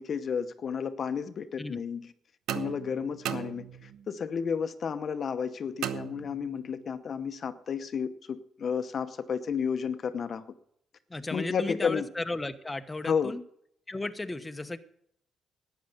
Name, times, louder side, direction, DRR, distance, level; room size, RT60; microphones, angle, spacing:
voice 1, 0.0-2.1 2.5-10.4 11.1-12.1 13.0-13.3, left 6 dB, 50° left, 10 dB, 0.9 m, -32 dB
sound 1, 2.5-4.1 5.8-6.8, right 10 dB, 85° right, 0.9 m, -37 dB
voice 2, 11.1-13.4 13.9-14.8, left 2 dB, 15° left, 8 dB, 1.0 m, -35 dB
12.5 x 9.4 x 6.6 m, 0.68 s
cardioid pair, 90°, 0 cm